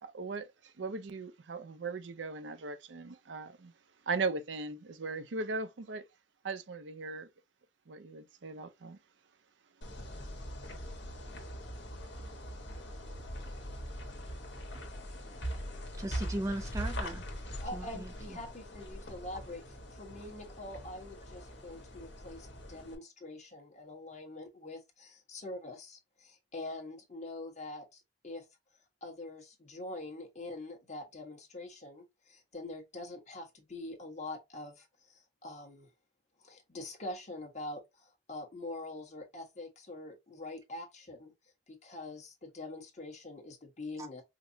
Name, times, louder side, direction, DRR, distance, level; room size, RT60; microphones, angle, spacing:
voice 1, 0.0-3.7 4.1-6.0 6.4-7.3 7.9-9.0, right 3 dB, 85° right, 0.6 m, -38 dB
sound 1, 9.8-22.9, equal, 75° left, 1.3 m, -42 dB
voice 2, 16.0-17.2 17.7-18.4 44.0-44.1, right 1 dB, 20° right, 0.3 m, -38 dB
voice 3, 17.6-19.6 19.9-28.4 29.0-35.9 36.4-41.3 41.7-44.2, left 2 dB, 40° left, 1.2 m, -44 dB
5.0 x 2.0 x 2.7 m
head